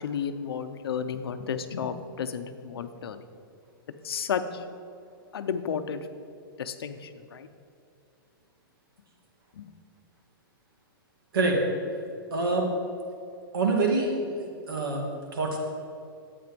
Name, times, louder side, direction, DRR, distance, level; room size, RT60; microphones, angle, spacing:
voice 1, 0.0-3.2 4.0-4.7 5.3-6.1 6.6-7.5 9.5-9.7, left 7 dB, 85° left, 10 dB, 0.9 m, -32 dB
voice 2, 12.3-12.7 13.5-14.1 14.4-15.1 15.3-15.6, right 3 dB, 65° right, 0 dB, 2.6 m, -25 dB
11.0 x 8.8 x 5.3 m, 2.5 s
hypercardioid pair, 175°, 12 cm